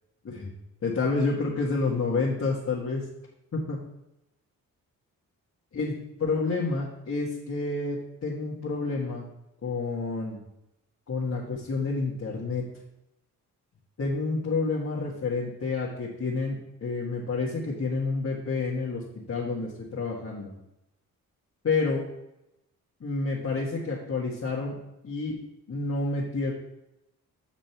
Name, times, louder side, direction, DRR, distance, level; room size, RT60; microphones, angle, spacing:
voice 1, 0.8-3.0 3.5-3.8 5.7-5.9 6.2-9.3 9.6-10.4 11.1-12.6 14.0-19.0 19.3-20.5 21.6-22.0 23.0-24.8 25.0-25.4 25.7-26.5, left 3 dB, 50° left, -5 dB, 1.8 m, -29 dB
8.6 x 5.1 x 4.6 m, 0.87 s
cardioid pair, 65°, 34 cm